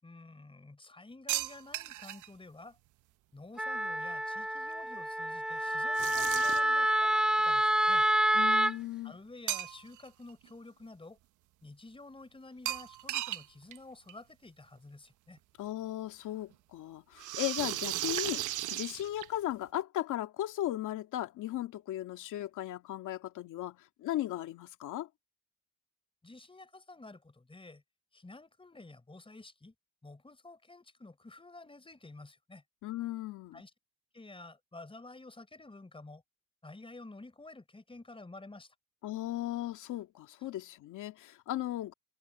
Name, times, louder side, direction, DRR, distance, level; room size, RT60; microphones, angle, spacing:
voice 1, 0.0-2.8 3.3-8.1 9.0-11.2 11.6-15.4 26.2-27.8 28.1-29.7 30.0-32.6 33.5-33.7 34.1-36.2 36.6-38.7, left 2 dB, 15° left, 4.4 m, -51 dB
sound 1, 1.3-2.3 5.9-6.8 9.5-10.1 10.4-10.5 12.7-13.5 13.7-13.8 14.1-14.2 15.4-15.5 17.2-19.5, right 14 dB, 90° right, 1.1 m, -35 dB
Wind instrument woodwind instrument, 3.6-8.7, right 1 dB, ahead, 0.4 m, -28 dB
voice 2, 8.3-9.2 15.6-25.1 32.8-33.6 39.0-41.9, left 14 dB, 85° left, 2.3 m, -37 dB
cardioid pair, 90°, 30 cm